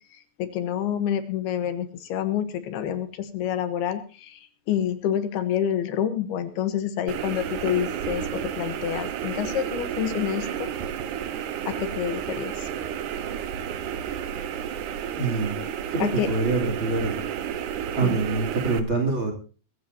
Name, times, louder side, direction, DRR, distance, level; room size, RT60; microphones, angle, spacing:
voice 1, 0.1-10.7 11.7-12.7 16.0-16.3 18.0-18.2, left 10 dB, 75° left, 11 dB, 2.9 m, -28 dB
sound 1, 7.1-18.8, right 9 dB, 65° right, 2.1 m, -31 dB
voice 2, 15.2-15.6 15.9-17.2 17.9-19.3, right 3 dB, 30° right, 4 dB, 3.3 m, -25 dB
21.0 x 15.5 x 2.8 m, 0.37 s
omnidirectional pair, 4.8 m